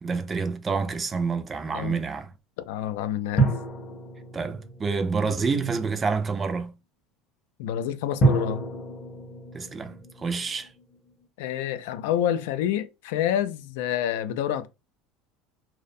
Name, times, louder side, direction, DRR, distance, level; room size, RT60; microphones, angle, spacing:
voice 1, 0.0-2.3 4.3-6.8 9.5-10.7, right 4 dB, 20° right, 0.3 m, -28 dB
voice 2, 2.6-3.5 7.6-8.7 11.4-14.7, left 10 dB, 80° left, 0.3 m, -28 dB
sound 1, 3.4-5.7 8.2-11.3, right 3 dB, 30° left, 0.6 m, -29 dB
2.5 x 2.0 x 2.6 m
cardioid pair, 150°, 0 cm